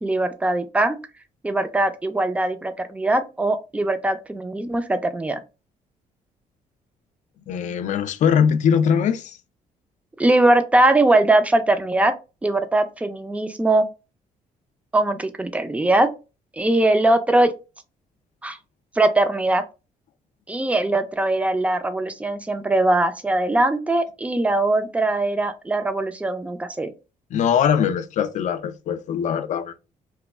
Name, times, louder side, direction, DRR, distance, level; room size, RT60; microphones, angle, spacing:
voice 1, 0.0-1.0 1.4-5.4 10.2-12.1 12.4-13.8 14.9-16.1 16.5-17.5 18.4-18.6 19.0-19.6 20.5-26.9, right 2 dB, 10° right, 0.4 m, -21 dB
voice 2, 7.5-9.4 27.3-29.8, left 7 dB, 60° left, 0.4 m, -21 dB
3.0 x 2.3 x 3.3 m
cardioid pair, 105°, 14 cm